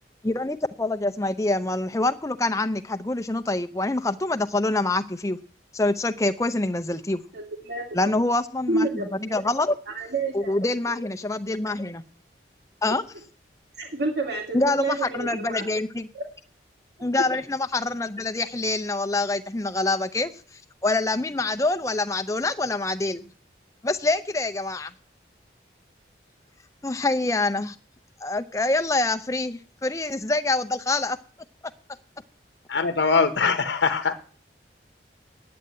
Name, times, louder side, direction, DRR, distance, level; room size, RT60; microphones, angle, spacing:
voice 1, 0.2-5.4 5.7-7.2 7.9-9.8 10.3-12.0 12.8-13.0 14.5-16.1 17.0-20.3 20.8-23.3 23.8-24.9 26.8-27.8 28.2-31.2, left 2 dB, 15° left, 9 dB, 0.6 m, -25 dB
voice 2, 7.3-8.1 8.7-9.4 9.9-10.5 13.8-15.7 16.1-16.2, right 2 dB, 65° right, 2 dB, 2.3 m, -29 dB
voice 3, 32.7-34.1, left 4 dB, 75° left, 10 dB, 0.9 m, -22 dB
9.4 x 8.7 x 9.3 m, 0.42 s
head